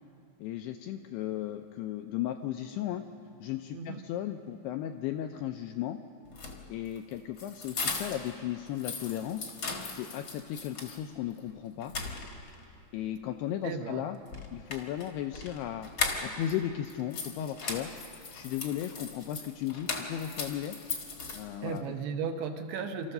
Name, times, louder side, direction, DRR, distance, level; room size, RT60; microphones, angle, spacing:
voice 1, 0.4-3.0 3.4-6.0 6.7-9.5 9.9-11.9 12.9-14.2 14.5-15.9 16.2-17.9 18.3-20.8 21.3-21.8, left 11 dB, 85° left, 6 dB, 2.3 m, -35 dB
sound 1, 6.3-8.3 8.7-11.0 11.4-11.5 11.8-12.6 14.3-16.5 16.8-21.8, left 4 dB, 55° left, 1.3 m, -38 dB
voice 2, 13.6-14.1 21.6-23.1, right 5 dB, 75° right, 5 dB, 2.7 m, -35 dB
29.5 x 13.5 x 6.6 m, 2.6 s
omnidirectional pair, 5.2 m